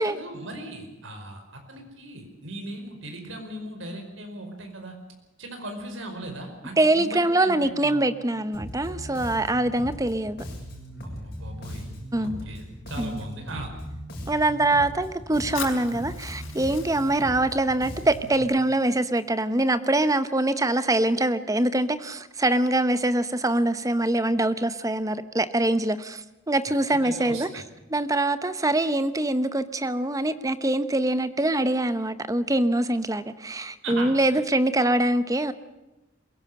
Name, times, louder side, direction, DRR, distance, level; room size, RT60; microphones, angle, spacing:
voice 1, 0.0-4.9 5.4-8.0 11.0-11.9 12.1-13.7 26.9-27.6 33.8-34.4, right 1 dB, 70° right, 4 dB, 5.1 m, -38 dB
voice 2, 6.8-10.4 12.1-12.4 13.0-13.2 14.3-27.6 27.9-35.5, right 1 dB, 15° right, 13 dB, 0.9 m, -24 dB
Bass guitar, 8.5-18.4, equal, 50° left, 6.8 m, -38 dB
Fire, 15.5-19.6, left 6 dB, 70° left, 5.1 m, -42 dB
22.5 x 17.0 x 7.8 m, 1.0 s
head